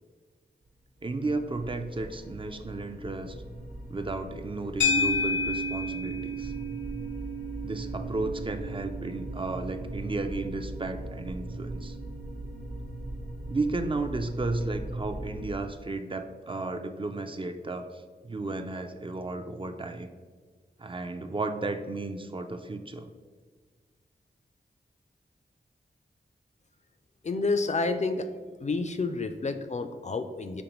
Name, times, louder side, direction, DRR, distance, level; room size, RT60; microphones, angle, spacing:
voice 1, 1.0-3.4 3.9-6.5 7.6-12.0 13.5-20.1 20.8-23.1, right 2 dB, 30° right, 6 dB, 0.4 m, -34 dB
sound 1, 1.0-15.6, right 1 dB, 55° right, 0.8 m, -40 dB
sound 2, 4.8-13.2, left 2 dB, 90° left, 0.6 m, -33 dB
voice 2, 27.2-28.3 28.6-30.6, left 3 dB, 40° left, 8 dB, 0.4 m, -29 dB
5.2 x 3.4 x 3.0 m, 1.5 s
wide cardioid pair, 55°, 18 cm